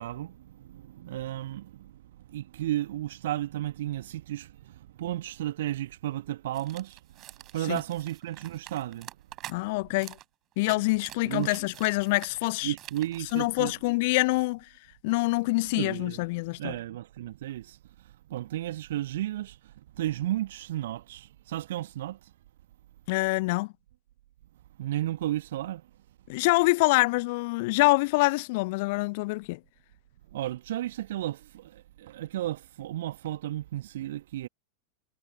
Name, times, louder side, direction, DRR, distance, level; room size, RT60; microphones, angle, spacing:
voice 1, 0.0-1.9 2.3-7.0 7.5-9.1 11.2-11.6 12.6-13.7 15.6-16.2 16.6-17.8 18.3-19.6 20.0-22.2 24.8-25.8 30.3-34.5, right 14 dB, 55° right, 1.4 m, -33 dB
sound 1, 6.5-9.6 10.0-10.3 10.5-13.4, right 14 dB, 35° right, 4.7 m, -47 dB
voice 2, 9.5-10.2 10.6-12.7 13.3-14.7 15.0-16.7 23.1-23.7 26.3-29.6, left 24 dB, 50° left, 0.4 m, -25 dB
figure-of-eight pair, 90°, 0 cm